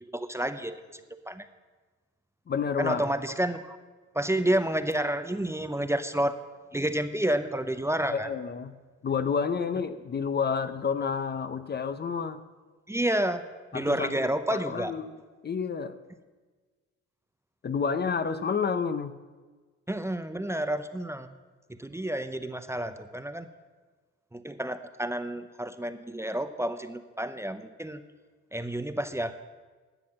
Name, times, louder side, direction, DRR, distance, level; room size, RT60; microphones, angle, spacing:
voice 1, 0.1-0.8 1.1-1.4 2.8-3.8 4.1-6.4 6.7-8.3 12.9-13.4 13.7-14.9 19.9-21.3 21.7-23.5 24.3-28.0 28.5-29.3, right 1 dB, 10° right, 10 dB, 0.7 m, -30 dB
voice 2, 2.5-3.1 8.1-8.7 9.0-12.4 13.7-14.1 14.5-15.1 15.4-16.0 17.6-19.1, left 6 dB, 35° left, 11 dB, 0.6 m, -29 dB
11.5 x 7.6 x 7.5 m, 1.4 s
cardioid pair, 90°, 30 cm